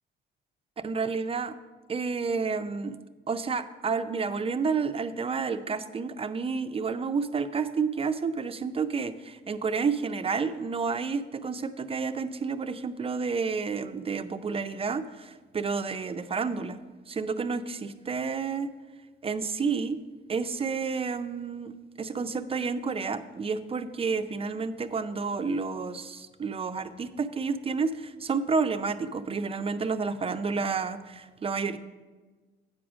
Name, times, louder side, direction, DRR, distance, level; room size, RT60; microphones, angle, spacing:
voice 1, 0.8-1.5 1.9-3.0 3.3-16.8 17.1-18.7 19.2-20.0 20.3-21.7 22.0-31.8, right 5 dB, 30° right, 11 dB, 0.4 m, -30 dB
8.8 x 4.9 x 6.0 m, 1.3 s
cardioid pair, 90°, 20 cm